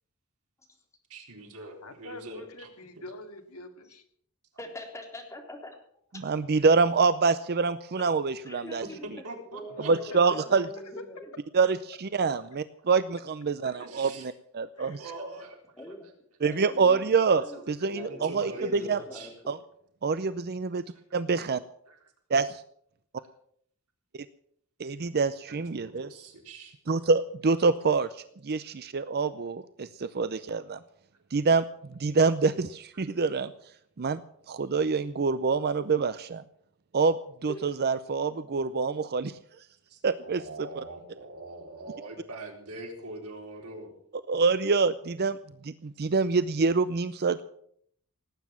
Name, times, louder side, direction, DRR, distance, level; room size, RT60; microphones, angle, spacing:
voice 1, 1.1-2.7 3.0-3.1 8.8-10.2 13.8-14.3 14.8-15.9 17.3-17.6 18.0-19.3 20.9-21.0 21.9-22.0 25.5-26.8 32.9-33.0 39.9-43.9, right 2 dB, 90° right, 2 dB, 3.9 m, -43 dB
voice 2, 1.8-4.0 10.1-11.0 13.6-13.9 14.8-15.2, left 1 dB, 80° left, 6 dB, 2.3 m, -45 dB
voice 3, 4.6-5.7 8.5-9.1 9.5-11.3 15.8-16.1 16.4-17.6 17.9-19.5 37.5-37.6, left 1 dB, 15° left, 1 dB, 3.7 m, -43 dB
voice 4, 6.2-8.8 9.9-10.7 11.5-15.0 16.4-19.0 19.5-19.6 20.0-20.8 21.1-21.6 22.3-22.6 24.1-24.3 24.8-26.1 26.9-30.8 31.3-33.5 34.0-34.2 34.5-36.4 36.9-37.2 37.4-39.4 40.0-40.4 44.3-45.4 45.6-47.4, right 4 dB, 45° right, 14 dB, 0.6 m, -26 dB
18.5 x 9.4 x 7.4 m, 0.66 s
head